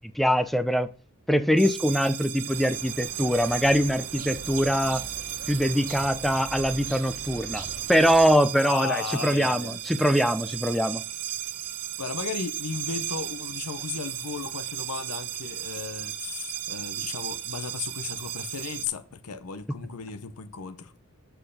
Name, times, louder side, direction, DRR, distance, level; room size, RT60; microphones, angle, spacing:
voice 1, 0.2-0.9 1.3-5.0 5.5-11.0, equal, ahead, 0.4 m, -23 dB
sound 1, 1.6-18.9, right 13 dB, 90° right, 0.8 m, -35 dB
sound 2, 2.5-8.4, right 3 dB, 40° right, 0.8 m, -43 dB
voice 2, 8.6-9.8 12.0-20.9, left 6 dB, 85° left, 0.8 m, -35 dB
7.5 x 4.5 x 6.6 m
head